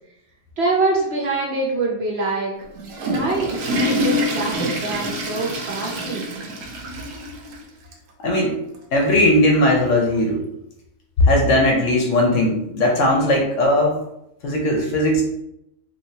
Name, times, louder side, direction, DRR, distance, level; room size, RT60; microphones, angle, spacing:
voice 1, 0.6-2.5 3.1-6.3, right 3 dB, 55° right, -3 dB, 0.8 m, -24 dB
Water / Toilet flush, 2.6-7.6 7.9-8.0 8.7-8.8 10.1-10.2, equal, 85° right, 1.1 m, -26 dB
voice 2, 8.2-8.6 8.9-10.4 11.2-14.0 14.4-15.2, left 1 dB, 65° left, 1 dB, 0.9 m, -18 dB
3.3 x 2.8 x 2.7 m, 0.81 s
omnidirectional pair, 1.5 m